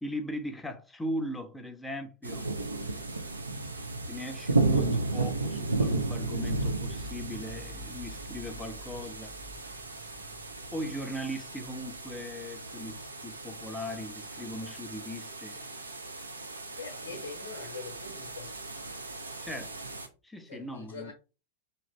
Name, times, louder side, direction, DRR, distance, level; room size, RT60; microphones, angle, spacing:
voice 1, 0.0-2.5 4.1-9.4 10.7-15.6 19.4-19.7 20.2-21.1, equal, 5° left, 0.5 m, -38 dB
sound 1, 2.2-20.1, right 3 dB, 80° right, 0.4 m, -34 dB
sound 2, 6.8-12.4, right 1 dB, 35° right, 0.7 m, -50 dB
voice 2, 16.8-18.6 20.5-21.1, left 4 dB, 65° left, 0.7 m, -43 dB
2.8 x 2.5 x 3.1 m
figure-of-eight pair, 90°, 0 cm